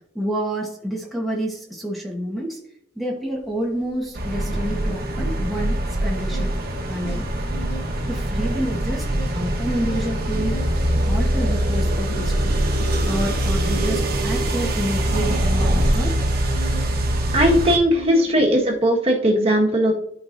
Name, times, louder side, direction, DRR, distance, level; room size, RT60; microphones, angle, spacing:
voice 1, 0.1-2.6 2.9-6.5 6.9-7.5 8.1-10.6 11.1-12.5 13.0-16.2, equal, ahead, -2 dB, 1.2 m, -28 dB
sound 1, 3.4-3.5 3.8-5.8 6.1-7.9 8.3-17.0 17.2-18.8, right 3 dB, 60° left, 0.8 m, -39 dB
sound 2, 4.1-17.8, right 1 dB, 55° right, 1.3 m, -23 dB
voice 2, 17.3-19.9, equal, 30° right, -1 dB, 1.5 m, -18 dB
12.0 x 4.7 x 2.6 m, 0.79 s
head